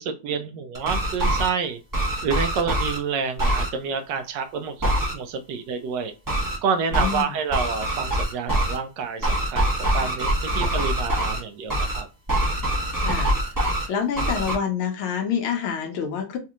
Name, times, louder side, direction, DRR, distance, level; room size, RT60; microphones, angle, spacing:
voice 1, 0.0-1.8 2.2-6.1 6.6-9.7 9.9-12.1, right 6 dB, 75° right, 8 dB, 1.0 m, -28 dB
sound 1, 0.7-1.5 1.9-3.0 3.4-3.7 4.8-5.1 6.3-6.6 6.9-7.2 7.5-8.8 9.2-11.4 11.7-12.0 12.3-13.9 14.2-14.5, right 1 dB, 20° right, 0.5 m, -24 dB
voice 2, 6.9-7.4 13.0-13.3 13.9-16.4, left 7 dB, 85° left, 5 dB, 1.7 m, -27 dB
4.1 x 2.8 x 2.4 m, 0.30 s
omnidirectional pair, 2.3 m